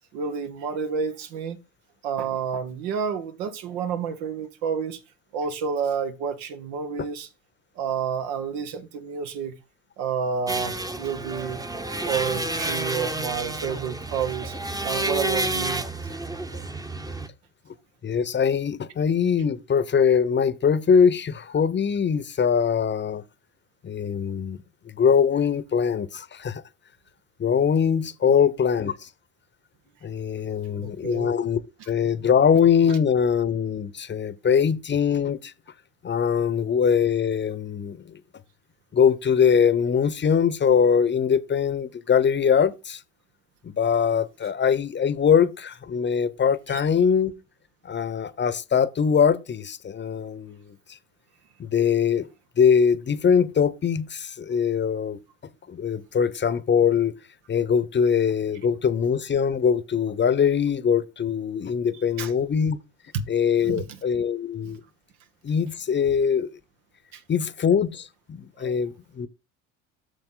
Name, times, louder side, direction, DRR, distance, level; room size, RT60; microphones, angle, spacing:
voice 1, 0.1-1.6 2.0-5.0 5.3-7.3 7.8-9.6 10.0-11.6 12.0-14.5 14.8-15.8 28.2-28.4 30.7-31.3 46.7-46.8 62.2-62.3 63.1-63.2 63.6-64.0 64.6-64.8 67.1-67.2 68.6-68.7, right 6 dB, 70° right, 1.5 m, -30 dB
sound 1, 10.5-17.3, right 1 dB, 10° right, 1.0 m, -30 dB
voice 2, 18.0-23.2 23.8-24.6 24.9-26.6 27.4-29.1 30.0-31.6 31.9-35.5 36.0-38.2 38.9-43.0 43.6-47.3 47.8-51.0 51.6-52.3 52.6-55.2 55.7-57.1 57.5-62.8 63.3-64.8 65.4-66.5 67.3-69.3, left 7 dB, 30° left, 1.0 m, -22 dB
8.1 x 6.7 x 3.9 m
hypercardioid pair, 70°, 37 cm